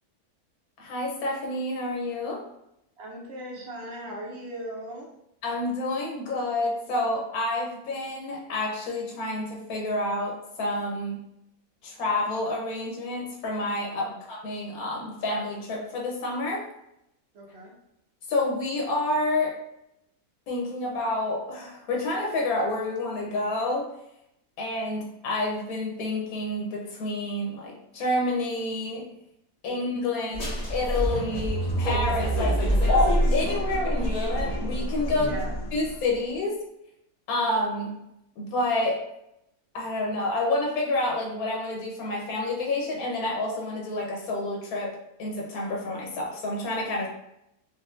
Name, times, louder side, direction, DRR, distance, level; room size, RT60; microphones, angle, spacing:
voice 1, 0.8-2.4 5.4-11.2 11.8-16.6 18.3-19.6 20.5-23.9 24.6-29.0 29.6-32.6 32.9-35.3 35.7-36.5 37.3-37.9 38.4-39.0 39.7-47.1, left 2 dB, 80° left, -2 dB, 1.2 m, -29 dB
voice 2, 3.0-5.1 14.0-14.2 17.3-17.7 29.6-29.8 30.2-30.4 32.3-32.8 35.2-35.5, right 1 dB, 65° right, -1 dB, 0.7 m, -39 dB
sound 1, 30.3-35.9, equal, 40° left, 0.6 m, -26 dB
4.0 x 2.0 x 2.5 m, 0.82 s
omnidirectional pair, 1.5 m